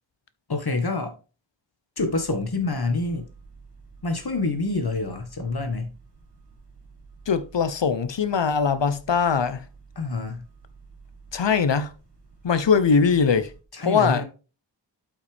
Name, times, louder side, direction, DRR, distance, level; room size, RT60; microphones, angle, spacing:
voice 1, 0.5-1.1 2.0-3.3 4.0-5.9 10.0-10.4 13.7-14.2, left 3 dB, 55° left, 1.7 m, -27 dB
sound 1, 2.0-13.6, right 4 dB, 60° right, 2.9 m, -50 dB
voice 2, 7.3-9.6 11.3-11.9 12.4-13.5 13.8-14.2, left 6 dB, 75° left, 0.8 m, -21 dB
8.3 x 5.7 x 3.4 m
wide cardioid pair, 50°, 44 cm